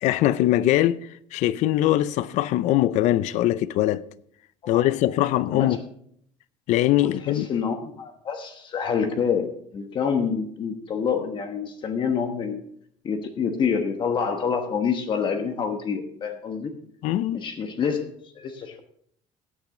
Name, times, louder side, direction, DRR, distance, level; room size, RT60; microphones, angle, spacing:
voice 1, 0.0-1.0 1.3-4.0 4.7-5.8 6.7-7.5 17.0-17.5, left 14 dB, 65° left, 0.6 m, -22 dB
voice 2, 7.2-12.6 13.0-16.7 17.3-18.8, left 6 dB, 35° left, 1.2 m, -27 dB
16.0 x 8.8 x 3.8 m
cardioid pair, 140°, 13 cm